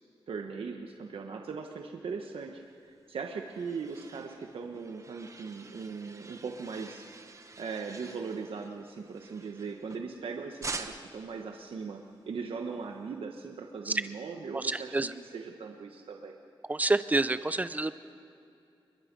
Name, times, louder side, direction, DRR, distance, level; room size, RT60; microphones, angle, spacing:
voice 1, 0.3-7.1 7.6-16.3, right 5 dB, 85° right, 3 dB, 1.4 m, -39 dB
sound 1, 2.9-10.2 10.6-11.3, right 3 dB, 35° right, 1.1 m, -46 dB
voice 2, 14.5-15.1 16.7-17.9, right 2 dB, 15° right, 13 dB, 0.7 m, -28 dB
28.5 x 22.5 x 5.4 m, 2.6 s
wide cardioid pair, 155°, 9 cm